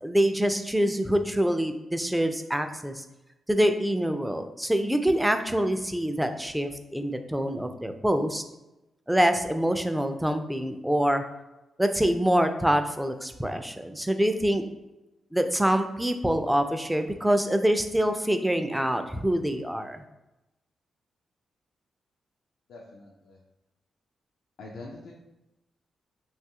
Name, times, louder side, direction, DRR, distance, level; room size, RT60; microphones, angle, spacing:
voice 1, 0.0-3.0 3.5-8.4 9.1-11.2 11.8-14.6 15.3-20.0, equal, 5° right, 7 dB, 0.3 m, -25 dB
voice 2, 22.7-23.4 24.6-25.1, left 2 dB, 75° left, -2 dB, 0.3 m, -44 dB
2.9 x 2.3 x 2.8 m, 0.94 s
supercardioid pair, 55°, 0 cm